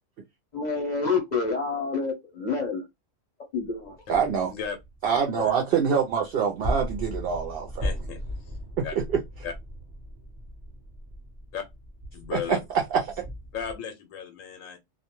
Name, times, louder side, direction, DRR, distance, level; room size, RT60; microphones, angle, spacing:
voice 1, 0.5-2.8 3.5-3.9, left 4 dB, 45° left, 0.7 m, -28 dB
sound 1, 3.6-13.7, equal, 25° right, 0.6 m, -37 dB
voice 2, 4.1-4.5 5.0-7.9 8.8-8.9 12.3-12.4 13.2-13.3, right 7 dB, 60° right, 0.6 m, -25 dB
voice 3, 7.8-8.6 8.8-9.0 9.4-9.5 11.5-11.7 12.1-12.6 13.5-14.8, left 7 dB, 85° left, 1.0 m, -35 dB
2.4 x 2.2 x 2.9 m
omnidirectional pair, 1.3 m